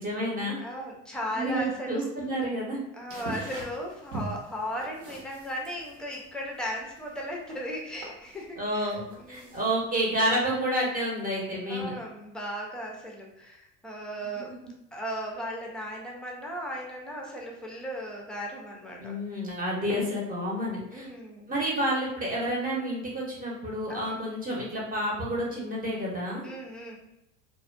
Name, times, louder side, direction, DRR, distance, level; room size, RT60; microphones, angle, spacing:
voice 1, 0.0-0.5 1.3-2.8 8.6-11.9 19.0-21.1 21.5-26.4, equal, 25° right, -3 dB, 0.9 m, -29 dB
voice 2, 0.6-2.1 2.9-9.6 11.7-14.5 14.9-19.1 20.9-21.5 23.9-24.2 26.4-27.0, equal, ahead, -2 dB, 0.5 m, -36 dB
sound 1, 3.1-9.9, right 1 dB, 60° right, 1.0 m, -42 dB
2.4 x 2.2 x 2.4 m, 0.86 s
supercardioid pair, 105°, 34 cm